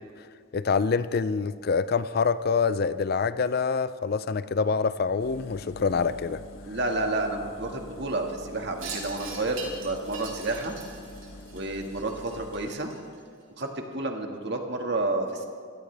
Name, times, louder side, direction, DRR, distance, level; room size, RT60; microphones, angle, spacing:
voice 1, 0.5-6.4, left 5 dB, 45° left, 15 dB, 0.4 m, -26 dB
Engine, 5.2-12.7, left 1 dB, 70° left, 1.2 m, -45 dB
voice 2, 6.7-10.7 11.5-13.0 13.6-13.7 13.9-15.4, right 2 dB, 55° right, 3 dB, 1.8 m, -30 dB
Wind chime, 8.8-13.4, right 4 dB, 85° right, 4.5 m, -42 dB
25.0 x 17.0 x 3.4 m, 2.1 s
head